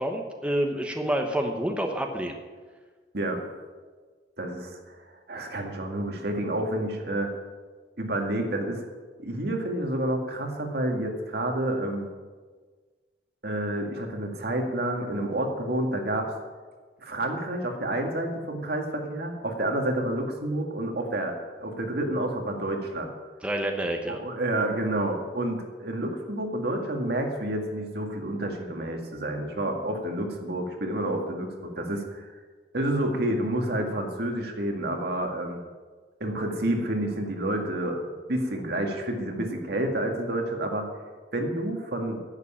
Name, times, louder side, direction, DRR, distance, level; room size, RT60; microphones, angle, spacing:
voice 1, 0.0-2.3 23.4-24.2, right 1 dB, 5° right, 3 dB, 1.0 m, -28 dB
voice 2, 4.4-5.0 5.3-7.3 8.0-8.8 9.2-12.1 13.4-16.3 17.0-21.3 21.6-23.1 24.1-32.3 32.7-35.6 36.2-38.0 38.3-40.9 41.3-42.2, right 1 dB, 65° right, 2 dB, 2.0 m, -29 dB
11.0 x 8.3 x 8.8 m, 1.4 s
head